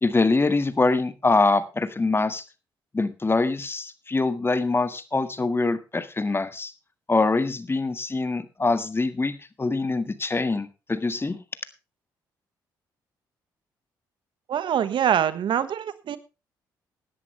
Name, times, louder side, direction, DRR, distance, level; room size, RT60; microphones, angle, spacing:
voice 1, 0.0-2.4 2.9-6.7 7.1-11.4, left 3 dB, 25° left, 12 dB, 1.7 m, -24 dB
voice 2, 14.5-16.2, right 9 dB, 65° right, 14 dB, 1.2 m, -24 dB
16.5 x 11.0 x 3.2 m, 0.29 s
supercardioid pair, 55°, 9 cm